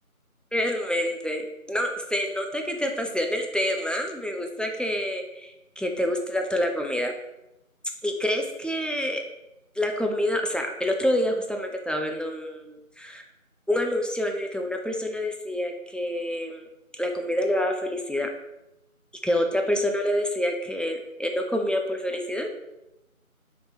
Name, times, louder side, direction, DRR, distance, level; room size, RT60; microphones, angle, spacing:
voice 1, 0.5-7.1 8.0-9.2 9.8-13.2 13.7-16.7 17.0-18.3 19.2-22.5, left 1 dB, 5° left, 2 dB, 0.3 m, -27 dB
3.2 x 2.9 x 4.0 m, 0.91 s
figure-of-eight pair, 175°, 43 cm